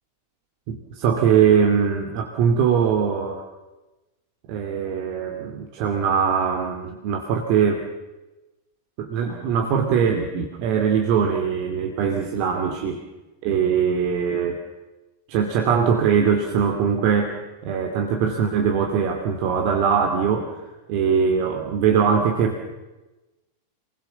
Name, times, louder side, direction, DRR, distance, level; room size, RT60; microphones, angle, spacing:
voice 1, 0.7-3.4 4.5-7.8 9.0-13.0 13.4-14.6 15.3-17.4 17.6-20.5 20.9-22.6, right 7 dB, 45° right, 4 dB, 2.7 m, -21 dB
28.0 x 20.5 x 7.0 m, 1.1 s
figure-of-eight pair, 90°, 0 cm